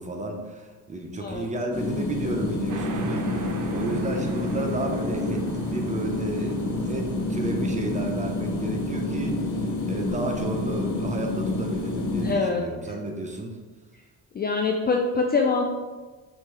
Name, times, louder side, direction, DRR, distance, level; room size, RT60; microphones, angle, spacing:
voice 1, 0.0-13.6, right 1 dB, 20° right, 2 dB, 0.7 m, -33 dB
sound 1, 1.7-12.3, left 2 dB, 45° left, 1.1 m, -28 dB
sound 2, 2.7-9.9, right 4 dB, 50° right, 0.7 m, -41 dB
voice 2, 12.2-12.7 14.3-15.6, left 4 dB, 25° left, 1 dB, 0.4 m, -24 dB
5.9 x 2.7 x 3.2 m, 1.3 s
supercardioid pair, 85°, 41 cm